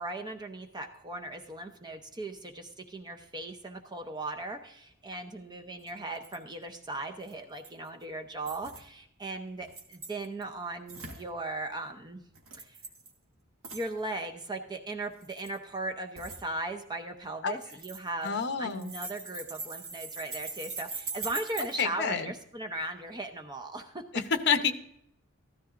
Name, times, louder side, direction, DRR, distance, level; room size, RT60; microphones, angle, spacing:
voice 1, 0.0-12.2 12.5-12.8 13.7-24.0, right 2 dB, 20° right, 5 dB, 0.7 m, -38 dB
sound 1, 5.9-6.0 6.1-6.4 7.3-7.9 8.4-8.8 9.6-10.4 10.9-11.2 12.3-13.1 13.6-13.9 15.1-15.6 16.1-16.4 17.6-18.4 18.7-21.8, right 3 dB, 70° right, 1.6 m, -41 dB
voice 2, 18.2-18.9 21.8-22.3 24.1-24.7, left 6 dB, 55° left, 7 dB, 0.8 m, -28 dB
14.0 x 13.0 x 2.5 m, 0.74 s
head